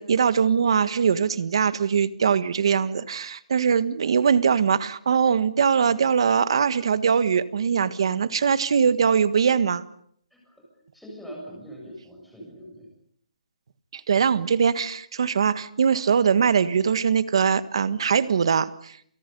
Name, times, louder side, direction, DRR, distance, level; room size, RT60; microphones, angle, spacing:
voice 1, 0.0-9.8 13.9-19.0, right 6 dB, 45° right, 14 dB, 1.6 m, -22 dB
voice 2, 10.3-10.6 10.9-12.9, equal, ahead, -3 dB, 7.5 m, -42 dB
29.5 x 28.5 x 5.5 m, 0.65 s
hypercardioid pair, 175°, 4 cm